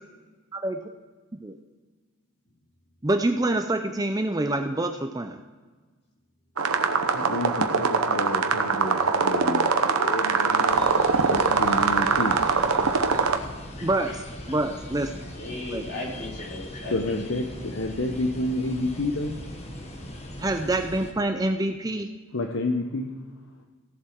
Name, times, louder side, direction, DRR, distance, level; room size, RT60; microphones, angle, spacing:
voice 1, 3.0-5.4 13.8-14.2 14.5-15.3 15.7-15.8 20.4-22.1, right 2 dB, 15° right, 7 dB, 0.5 m, -26 dB
sound 1, 6.6-13.4, right 4 dB, 85° right, 1.0 m, -23 dB
voice 2, 7.1-10.9 11.2-12.3 16.9-19.4 22.3-23.1, left 2 dB, 65° left, 3 dB, 0.9 m, -29 dB
sound 2, 10.7-21.1, left 1 dB, 30° left, 1.2 m, -40 dB
voice 3, 15.3-17.8, left 2 dB, 45° left, -4 dB, 4.0 m, -37 dB
16.0 x 7.5 x 4.5 m, 1.4 s
head